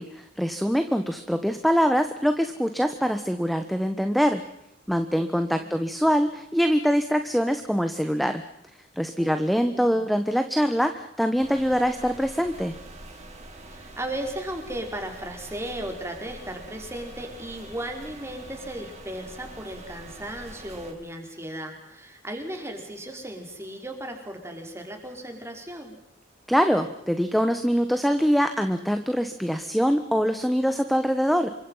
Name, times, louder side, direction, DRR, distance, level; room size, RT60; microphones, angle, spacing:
voice 1, 0.0-4.4 4.9-8.4 9.0-12.7 26.5-31.5, equal, ahead, 8 dB, 1.3 m, -24 dB
voice 2, 5.1-5.9 9.2-10.1 13.7-26.0, right 1 dB, 15° right, 3 dB, 5.3 m, -36 dB
sound 1, 11.4-20.9, right 2 dB, 40° right, 5.4 m, -44 dB
28.0 x 24.5 x 5.8 m, 0.80 s
head